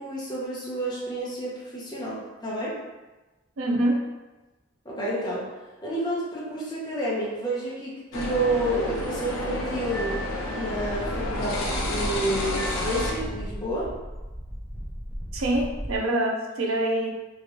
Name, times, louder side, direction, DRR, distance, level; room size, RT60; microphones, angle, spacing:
voice 1, 0.0-2.2 2.4-2.7 4.8-5.4 5.8-10.2 10.5-13.9, right 1 dB, 20° left, -7 dB, 0.8 m, -29 dB
voice 2, 3.6-4.0 15.3-17.1, right 1 dB, 80° right, 1 dB, 0.5 m, -25 dB
sound 1, 8.1-13.1, left 1 dB, 80° left, 0.5 m, -30 dB
sound 2, 10.7-16.0, equal, ahead, 0.4 m, -35 dB
3.1 x 2.5 x 2.8 m, 1.1 s
head